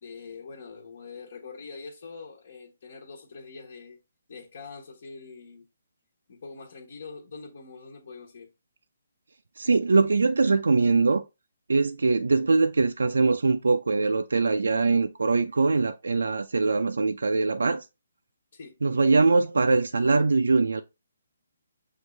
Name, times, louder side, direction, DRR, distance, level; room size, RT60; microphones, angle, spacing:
voice 1, 0.0-4.0 4.3-5.7 6.3-8.5 18.5-18.8, left 4 dB, 60° left, 1.2 m, -44 dB
voice 2, 9.6-11.2 11.7-17.8 18.8-20.8, right 3 dB, 85° right, 0.4 m, -22 dB
6.3 x 2.5 x 3.2 m
hypercardioid pair, 155°, 0 cm